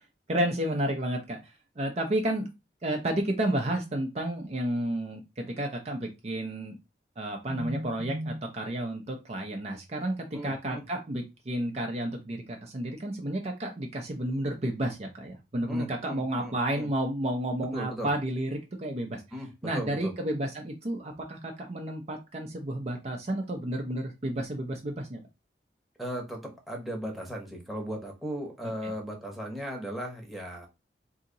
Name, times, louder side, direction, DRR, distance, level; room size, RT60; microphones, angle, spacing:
voice 1, 0.3-2.5 2.8-6.8 7.2-10.1 10.4-19.2 19.6-25.2 28.8-28.9, right 1 dB, 40° right, 3 dB, 0.6 m, -31 dB
voice 2, 10.3-10.8 15.7-16.9 17.7-18.1 19.3-20.1 26.0-30.7, equal, ahead, 0 dB, 0.9 m, -37 dB
2.8 x 2.7 x 3.8 m, 0.24 s
head